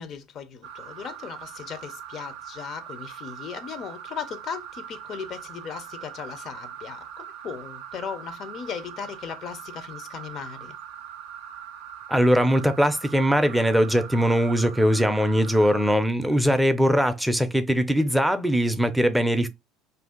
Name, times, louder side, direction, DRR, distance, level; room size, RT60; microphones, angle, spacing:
voice 1, 0.0-10.7 16.3-16.4, left 7 dB, 50° left, 0.5 m, -37 dB
sound 1, 0.6-16.0, right 9 dB, 85° right, 0.4 m, -41 dB
voice 2, 12.1-19.5, equal, 5° right, 0.4 m, -21 dB
2.6 x 2.3 x 3.6 m
supercardioid pair, 100°, 0 cm